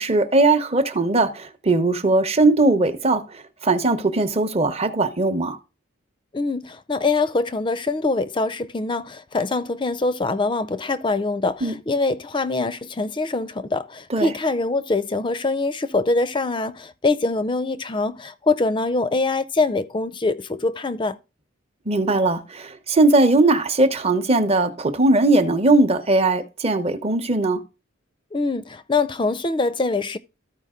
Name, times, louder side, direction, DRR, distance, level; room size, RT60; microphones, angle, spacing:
voice 1, 0.0-5.6 11.6-11.7 14.1-14.3 21.9-27.6, right 2 dB, 30° right, 0.8 m, -19 dB
voice 2, 6.3-21.2 28.3-30.2, left 3 dB, 25° left, 0.5 m, -24 dB
13.5 x 4.8 x 3.7 m
head